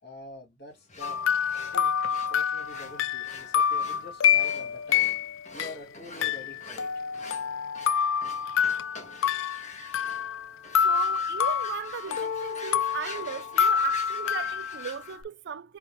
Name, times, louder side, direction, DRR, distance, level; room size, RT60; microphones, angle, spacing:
voice 1, 0.0-1.3 1.7-5.2 5.5-7.0, left 2 dB, 55° left, 2.0 m, -46 dB
sound 1, 0.9-15.2, left 3 dB, 35° left, 1.6 m, -45 dB
sound 2, 1.0-5.7 6.2-10.5 10.7-15.2, left 8 dB, 80° left, 0.4 m, -27 dB
voice 2, 10.8-15.8, right 7 dB, 60° right, 0.4 m, -36 dB
4.2 x 3.5 x 2.7 m
head